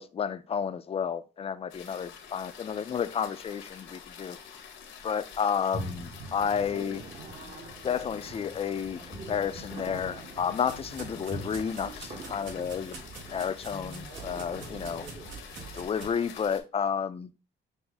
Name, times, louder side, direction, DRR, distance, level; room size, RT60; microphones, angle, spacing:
voice 1, 0.0-4.4 5.0-7.0 7.8-13.0 13.3-15.1 15.7-17.3, left 7 dB, 30° left, 0.4 m, -31 dB
sound 1, 1.7-16.6, left 7 dB, 80° left, 0.9 m, -47 dB
sound 2, 5.7-15.9, right 2 dB, 35° right, 0.9 m, -44 dB
sound 3, 9.7-16.0, right 4 dB, 75° right, 1.3 m, -46 dB
5.6 x 2.0 x 3.4 m
cardioid pair, 90°, 20 cm